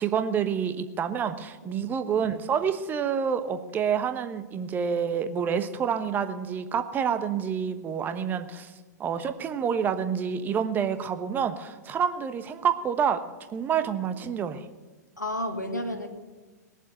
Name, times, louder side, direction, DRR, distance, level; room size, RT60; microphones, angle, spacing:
voice 1, 0.0-8.7 9.0-13.2 13.5-14.7, right 7 dB, 20° right, 9 dB, 1.1 m, -28 dB
voice 2, 15.2-16.1, left 1 dB, 85° left, 4 dB, 2.3 m, -31 dB
20.5 x 7.4 x 9.3 m, 1.2 s
figure-of-eight pair, 105°, 9 cm